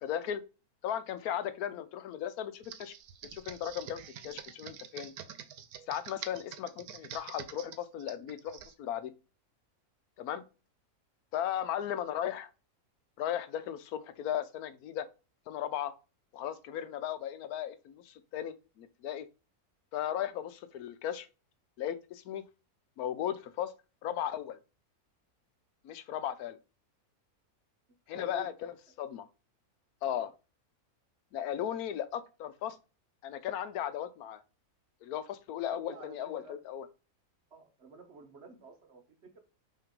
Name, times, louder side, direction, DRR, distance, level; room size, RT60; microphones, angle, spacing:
voice 1, 0.0-0.4 0.8-2.9 3.3-5.1 5.9-9.1 10.2-10.4 11.3-12.5 13.2-15.1 15.5-15.9 16.3-19.3 19.9-21.3 21.8-22.4 23.0-23.7 24.0-24.6 25.8-26.6 28.1-29.3 30.0-30.3 31.3-32.8 33.2-34.4 35.0-36.9, left 10 dB, 80° left, 1.1 m, -36 dB
Computer keyboard, 2.6-8.7, right 9 dB, 85° right, 1.2 m, -46 dB
voice 2, 11.5-11.9 28.1-28.5 30.1-30.3 35.7-36.6 37.5-39.4, right 4 dB, 50° right, 1.1 m, -52 dB
5.6 x 3.2 x 5.2 m
omnidirectional pair, 1.6 m